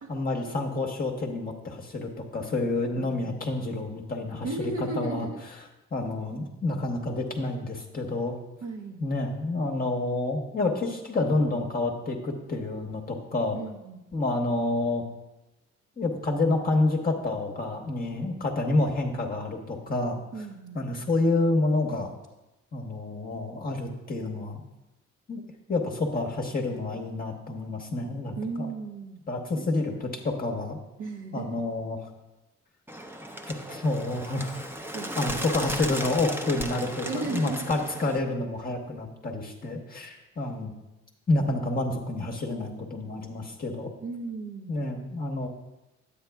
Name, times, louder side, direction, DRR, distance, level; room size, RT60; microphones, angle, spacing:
voice 1, 0.1-5.3 5.9-8.4 9.0-13.6 14.1-15.0 16.0-20.2 20.7-22.1 22.7-24.6 25.3-25.4 25.7-28.7 29.3-30.8 31.3-32.1 33.7-34.6 35.2-40.7 41.3-43.9 44.7-45.5, left 2 dB, 30° left, 0 dB, 1.0 m, -28 dB
voice 2, 4.4-5.4 8.6-9.0 13.5-14.1 18.1-18.3 20.3-20.8 28.4-29.2 29.6-29.7 31.0-31.5 34.9-35.4 37.0-37.8 44.0-44.8 45.4-45.5, right 3 dB, 50° right, -1 dB, 0.8 m, -36 dB
Bird, 32.9-38.2, equal, 5° right, 0.6 m, -36 dB
9.5 x 8.5 x 2.3 m, 1.0 s
cardioid pair, 90°, 30 cm